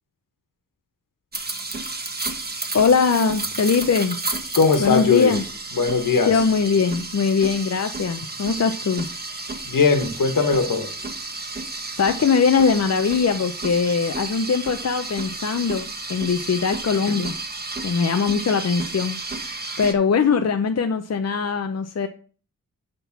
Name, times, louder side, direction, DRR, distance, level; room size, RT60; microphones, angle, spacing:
sound 1, 1.3-19.9, right 3 dB, 30° right, 1.6 m, -32 dB
voice 1, 2.7-4.2 4.8-5.4 6.3-9.1 12.0-17.3 17.8-22.1, left 5 dB, 50° left, 7 dB, 0.8 m, -21 dB
voice 2, 4.5-5.3 5.7-6.5 9.6-10.9 17.1-17.2, left 5 dB, 70° left, 9 dB, 1.7 m, -20 dB
11.0 x 3.9 x 6.0 m, 0.40 s
cardioid pair, 50°, 33 cm